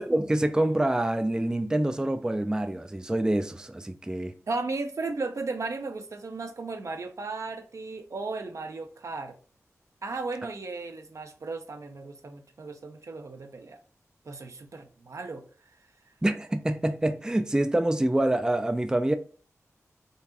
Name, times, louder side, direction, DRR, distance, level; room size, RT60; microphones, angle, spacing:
voice 1, 0.0-4.3 16.2-19.2, right 1 dB, 15° right, 0.4 m, -26 dB
voice 2, 4.5-9.3 10.0-13.8 14.2-15.4, right 3 dB, 65° right, 0.6 m, -35 dB
3.9 x 2.5 x 2.8 m
cardioid pair, 50°, 6 cm